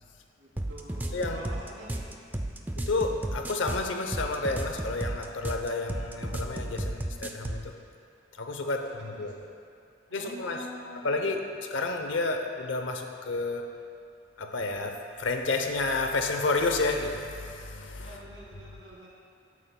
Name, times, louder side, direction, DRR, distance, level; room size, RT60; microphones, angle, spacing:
voice 1, 0.4-2.1 8.6-9.3 10.1-11.2 18.0-19.1, equal, 70° right, -4 dB, 2.0 m, -46 dB
sound 1, 0.6-7.7, right 1 dB, 10° right, 0.3 m, -33 dB
voice 2, 2.8-7.8 8.4-9.3 10.1-10.6 11.0-13.7 14.4-18.2, left 3 dB, 75° left, 4 dB, 0.7 m, -30 dB
12.5 x 9.4 x 2.2 m, 2.4 s
head